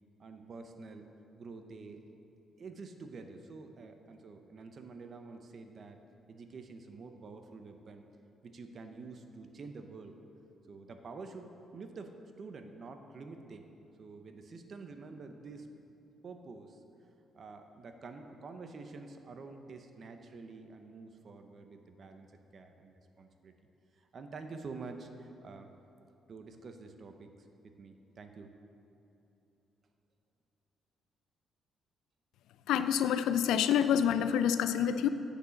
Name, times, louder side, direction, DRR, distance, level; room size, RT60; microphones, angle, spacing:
voice 1, 0.2-1.1 1.3-2.0 2.6-6.0 6.3-8.1 8.4-10.2 10.7-13.7 14.0-15.7 16.2-16.8 17.3-23.5 24.0-25.7 26.3-28.5, right 4 dB, 50° right, 6 dB, 0.9 m, -48 dB
voice 2, 32.7-35.1, left 9 dB, 85° left, 11 dB, 0.4 m, -27 dB
8.3 x 6.3 x 7.2 m, 2.9 s
cardioid pair, 90°, 0 cm